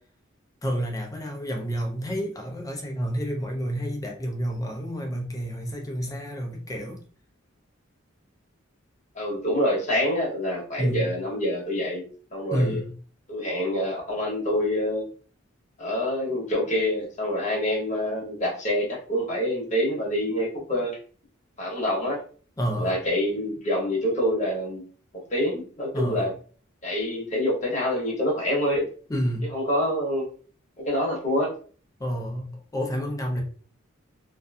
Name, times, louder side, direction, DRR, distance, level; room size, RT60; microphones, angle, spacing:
voice 1, 0.6-7.0 10.8-11.2 12.5-12.9 22.6-23.0 25.9-26.3 29.1-29.5 32.0-33.4, equal, 15° left, 0.5 m, -29 dB
voice 2, 9.1-12.0 12.3-12.8 13.3-15.1 15.8-21.0 21.6-22.2 22.8-24.8 25.1-26.3 26.8-28.9 29.5-30.3 30.8-31.5, left 1 dB, 35° left, 0.9 m, -26 dB
2.5 x 2.5 x 2.3 m
head